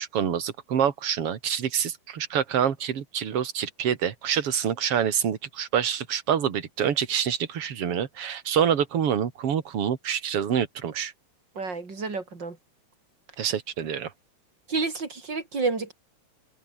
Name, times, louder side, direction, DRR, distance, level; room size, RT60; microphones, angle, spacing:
voice 1, 0.0-11.1 13.4-14.1, right 8 dB, 45° right, 2.4 m, -26 dB
voice 2, 11.6-12.6 14.7-15.9, right 4 dB, 25° right, 4.8 m, -29 dB
open air
omnidirectional pair, 4.6 m